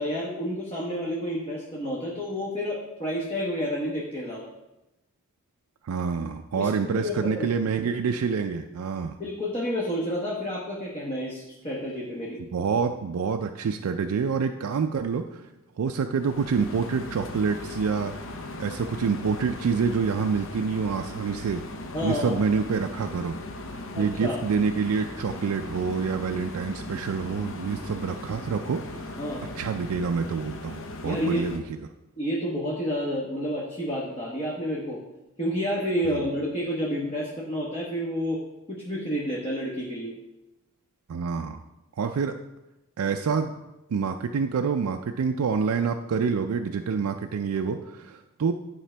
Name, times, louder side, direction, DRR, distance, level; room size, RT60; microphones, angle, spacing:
voice 1, 0.0-4.5 6.5-7.5 9.2-12.4 21.9-22.4 23.9-24.4 29.2-29.5 31.0-31.5 32.2-35.0 35.4-38.4 38.7-40.1, equal, 25° left, -4 dB, 1.0 m, -30 dB
voice 2, 5.8-9.2 12.4-15.5 15.8-18.1 18.6-21.6 22.0-23.4 23.7-29.2 29.5-31.6 36.0-36.2 41.1-41.6 42.0-42.3 43.0-43.5 43.9-48.5, right 5 dB, 80° right, 6 dB, 0.4 m, -27 dB
sound 1, 16.2-31.6, left 2 dB, 60° left, 0.7 m, -38 dB
10.0 x 4.9 x 3.3 m, 0.98 s
head